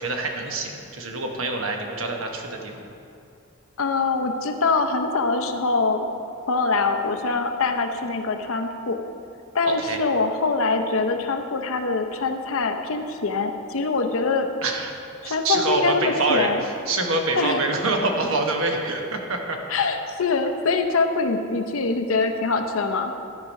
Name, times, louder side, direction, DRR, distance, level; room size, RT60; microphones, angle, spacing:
voice 1, 0.0-2.9 9.7-10.0 14.6-14.9 15.2-19.6, right 2 dB, 70° right, 2 dB, 1.0 m, -26 dB
voice 2, 3.8-6.1 6.5-9.0 9.5-14.5 15.2-16.6 17.4-17.7 19.7-23.1, left 3 dB, 70° left, 5 dB, 0.7 m, -24 dB
12.0 x 4.9 x 5.2 m, 2.6 s
head